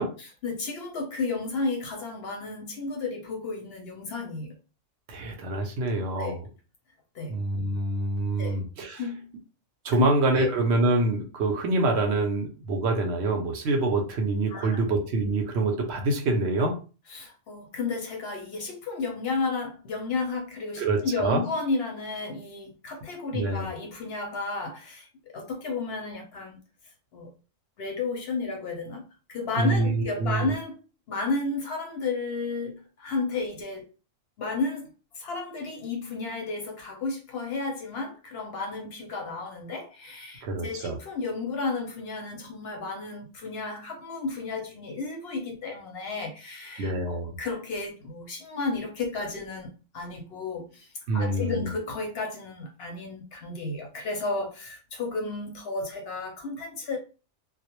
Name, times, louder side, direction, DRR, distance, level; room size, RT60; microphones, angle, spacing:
voice 1, 0.2-4.5 6.2-6.4 7.1-7.4 8.4-8.6 9.0-9.3 9.9-10.1 10.3-10.5 14.5-14.8 17.1-26.6 27.1-27.3 27.8-30.8 31.1-33.9 34.4-34.9 35.1-57.0, left 3 dB, 65° left, 1 dB, 0.7 m, -32 dB
voice 2, 5.1-6.4 7.3-9.0 9.8-16.7 20.8-21.4 23.3-23.7 29.6-30.5 40.4-41.0 46.8-47.4 51.1-51.6, right 2 dB, 65° right, 3 dB, 0.8 m, -26 dB
2.2 x 2.0 x 2.9 m, 0.34 s
omnidirectional pair, 1.3 m